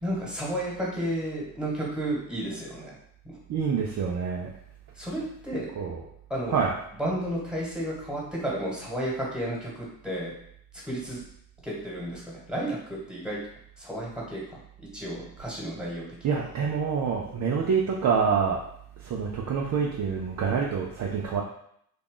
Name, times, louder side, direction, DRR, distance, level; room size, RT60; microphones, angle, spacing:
voice 1, 0.0-2.9 5.0-5.7 6.3-6.6 7.0-10.3 10.8-11.2 11.6-13.4 13.8-16.1, right 1 dB, ahead, -5 dB, 1.5 m, -32 dB
voice 2, 3.5-4.5 5.8-6.0 6.5-6.7 16.2-18.6 19.0-21.4, right 6 dB, 40° right, -1 dB, 0.6 m, -26 dB
2.9 x 2.3 x 3.8 m, 0.70 s
hypercardioid pair, 65°, 47 cm